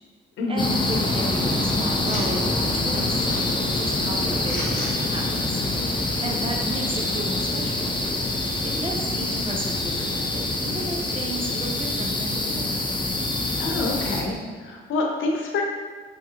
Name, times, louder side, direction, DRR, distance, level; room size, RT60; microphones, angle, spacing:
voice 1, 0.5-5.6 6.2-7.9 8.6-12.7, right 1 dB, 25° right, 0 dB, 0.8 m, -33 dB
sound 1, 0.6-14.2, left 2 dB, 25° left, 0.6 m, -25 dB
sound 2, 1.0-6.3, left 2 dB, 40° left, 1.5 m, -41 dB
voice 2, 13.6-15.6, left 3 dB, 80° left, 0 dB, 0.8 m, -27 dB
5.2 x 3.5 x 2.9 m, 1.5 s
cardioid pair, 90°, 20 cm